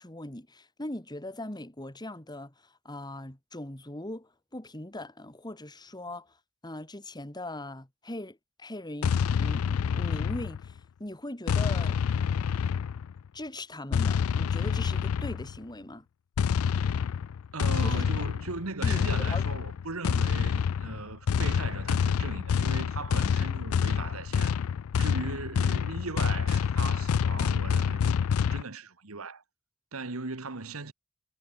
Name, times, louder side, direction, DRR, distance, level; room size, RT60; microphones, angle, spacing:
voice 1, 0.0-6.4 6.6-12.0 13.3-16.1 17.8-18.0 18.8-19.4, left 1 dB, 20° left, 2.3 m, -40 dB
sound 1, 9.0-10.8 11.5-13.2 13.9-15.6 16.4-28.6, left 7 dB, 80° left, 0.4 m, -27 dB
voice 2, 17.5-24.6 25.0-29.4 29.9-30.9, right 3 dB, 80° right, 1.6 m, -38 dB
head